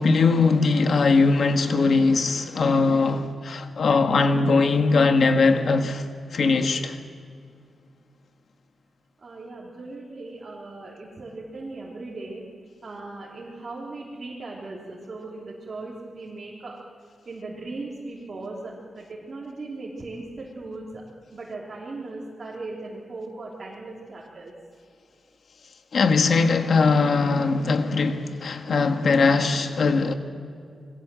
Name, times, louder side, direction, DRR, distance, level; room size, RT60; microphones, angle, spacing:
voice 1, 0.0-6.1 6.3-7.0 25.9-30.1, left 4 dB, 55° left, 1.7 m, -20 dB
voice 2, 9.2-12.4 12.8-16.8 17.2-21.0 21.3-24.5, right 2 dB, 35° right, 3.3 m, -38 dB
28.0 x 21.5 x 7.7 m
wide cardioid pair, 165°, 0 cm